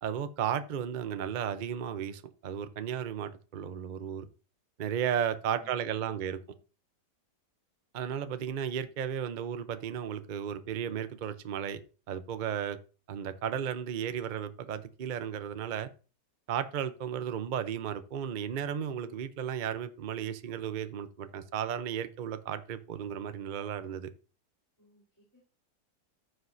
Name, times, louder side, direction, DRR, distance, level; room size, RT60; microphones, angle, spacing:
voice 1, 0.0-4.3 4.8-6.4 7.9-11.8 12.1-12.8 13.1-15.9 16.5-24.1, right 8 dB, 60° right, 0.5 m, -34 dB
voice 2, 5.6-6.4 24.8-25.4, left 1 dB, 10° left, 3.4 m, -63 dB
14.0 x 6.3 x 2.7 m
omnidirectional pair, 1.8 m